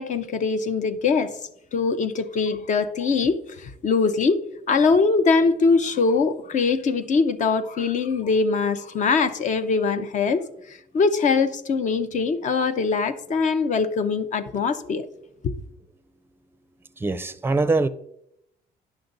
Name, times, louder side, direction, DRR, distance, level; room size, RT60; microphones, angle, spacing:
voice 1, 0.0-1.4 1.7-4.4 4.7-15.1 15.4-15.5, left 4 dB, 45° left, 0.7 m, -22 dB
voice 2, 17.0-17.9, right 3 dB, 15° right, 0.5 m, -22 dB
10.0 x 6.1 x 3.9 m
cardioid pair, 110°, 17 cm